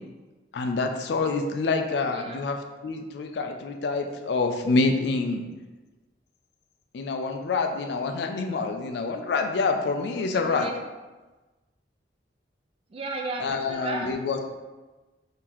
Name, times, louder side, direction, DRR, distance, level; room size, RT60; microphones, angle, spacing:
voice 1, 0.5-5.5 6.9-10.7 13.4-14.4, left 3 dB, 65° left, 5 dB, 0.3 m, -27 dB
voice 2, 2.1-2.4 10.3-10.8 12.9-14.1, right 2 dB, 30° right, 3 dB, 0.3 m, -34 dB
3.7 x 2.7 x 2.9 m, 1.2 s
head